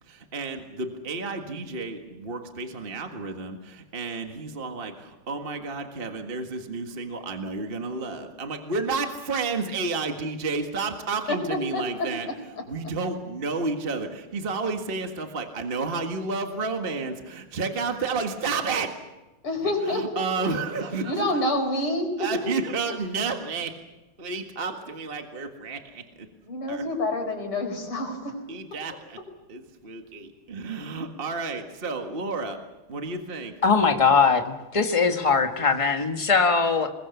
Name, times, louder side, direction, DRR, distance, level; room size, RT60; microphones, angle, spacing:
voice 1, 0.0-12.3 12.7-19.0 19.6-21.1 22.2-23.8 24.2-26.3 26.7-26.8 28.5-29.2 29.5-32.6 32.9-33.6, right 4 dB, 25° right, 4 dB, 1.8 m, -31 dB
voice 2, 11.7-12.1 19.4-20.5 21.0-22.5 26.5-28.4, left 1 dB, 75° left, 4 dB, 5.5 m, -28 dB
voice 3, 33.6-36.9, left 5 dB, 15° left, 5 dB, 1.6 m, -21 dB
27.0 x 21.5 x 7.1 m, 1.1 s
omnidirectional pair, 2.4 m